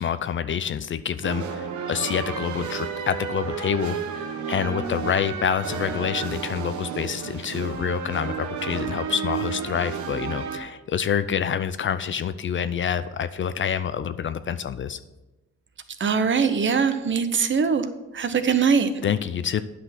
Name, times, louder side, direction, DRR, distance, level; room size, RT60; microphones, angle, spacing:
voice 1, 0.0-15.0 19.0-19.6, left 8 dB, 40° left, 13 dB, 0.5 m, -27 dB
sound 1, 1.2-10.6, right 6 dB, 70° right, 1.1 m, -32 dB
voice 2, 16.0-17.9 18.1-18.9, right 6 dB, 40° right, 10 dB, 0.9 m, -21 dB
9.4 x 5.9 x 6.0 m, 1.1 s
cardioid pair, 90°, 30 cm